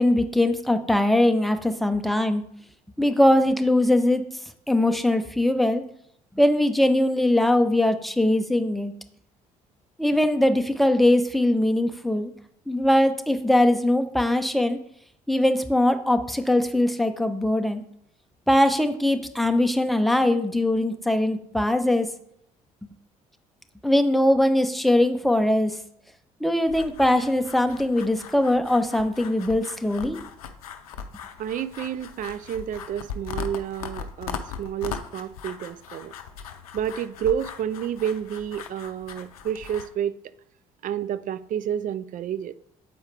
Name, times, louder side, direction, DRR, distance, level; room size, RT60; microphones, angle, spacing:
voice 1, 0.0-2.4 3.0-4.2 4.7-5.8 6.4-8.9 10.0-12.3 12.7-14.8 15.3-17.8 18.5-22.1 23.8-25.8 26.4-30.2, left 1 dB, ahead, 0.7 m, -21 dB
sound 1, 26.7-39.9, left 6 dB, 85° left, 0.5 m, -39 dB
voice 2, 31.4-36.1 36.7-40.2 40.8-42.6, right 9 dB, 50° right, 0.4 m, -30 dB
7.7 x 4.7 x 3.3 m
hypercardioid pair, 50°, 18 cm